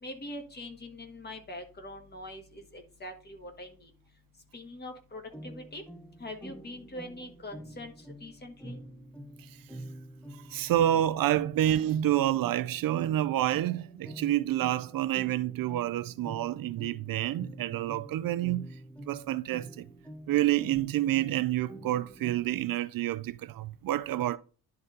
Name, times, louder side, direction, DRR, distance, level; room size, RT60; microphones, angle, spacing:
voice 1, 0.0-3.9 4.5-5.8 6.2-7.9 8.2-8.8, left 1 dB, 25° left, 1.5 m, -43 dB
sound 1, 5.3-22.8, right 1 dB, 5° left, 0.6 m, -47 dB
voice 2, 10.5-18.7 19.1-19.8 20.3-24.4, right 13 dB, 65° right, 0.5 m, -28 dB
11.0 x 4.0 x 3.9 m
wide cardioid pair, 170°, 36 cm